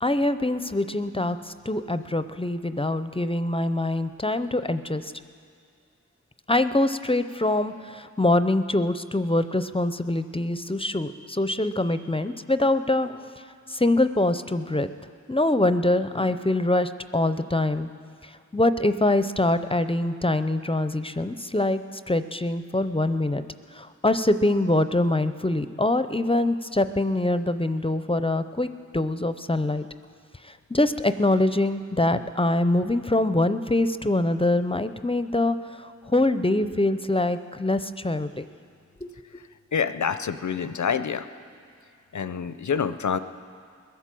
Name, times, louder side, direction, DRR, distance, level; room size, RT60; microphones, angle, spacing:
voice 1, 0.0-5.1 6.5-13.3 13.7-14.9 15.3-17.9 18.2-23.4 23.7-29.9 30.4-38.5 39.0-39.1, left 2 dB, 20° left, 11 dB, 0.5 m, -24 dB
voice 2, 39.7-41.3 42.1-43.2, left 6 dB, 70° left, 12 dB, 0.6 m, -27 dB
21.0 x 8.3 x 7.6 m, 2.3 s
wide cardioid pair, 50°, 30 cm